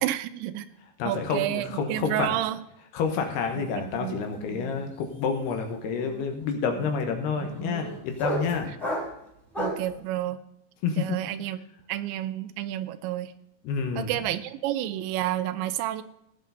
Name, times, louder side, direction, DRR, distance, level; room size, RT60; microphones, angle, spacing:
voice 1, 0.0-0.7 1.1-2.6 3.5-4.2 8.7-8.8 9.6-10.4 11.0-11.6 11.9-13.3 14.0-16.0, right 13 dB, 85° right, 12 dB, 2.8 m, -30 dB
voice 2, 1.0-2.3 2.9-8.7 10.8-11.2 13.6-14.1, left 5 dB, 70° left, 4 dB, 3.0 m, -29 dB
sound 1, 3.1-3.5 3.7-9.9, right 1 dB, ahead, 3.1 m, -35 dB
16.5 x 8.3 x 4.1 m, 0.80 s
omnidirectional pair, 5.3 m